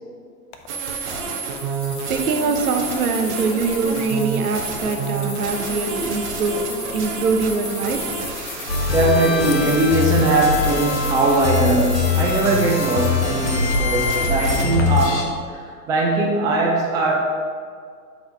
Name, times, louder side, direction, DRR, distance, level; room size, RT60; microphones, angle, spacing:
sound 1, 0.5-14.8, left 8 dB, 45° left, 0.8 m, -37 dB
sound 2, 0.7-14.7, right 5 dB, 45° right, 1.3 m, -30 dB
voice 1, 2.1-6.6 6.9-8.0, right 4 dB, 65° right, 5 dB, 0.9 m, -23 dB
sound 3, 8.7-15.2, left 4 dB, 80° left, 1.4 m, -22 dB
voice 2, 8.9-17.1, right 2 dB, 10° right, -2 dB, 0.4 m, -20 dB
8.0 x 4.0 x 4.9 m, 2.1 s
figure-of-eight pair, 100°, 47 cm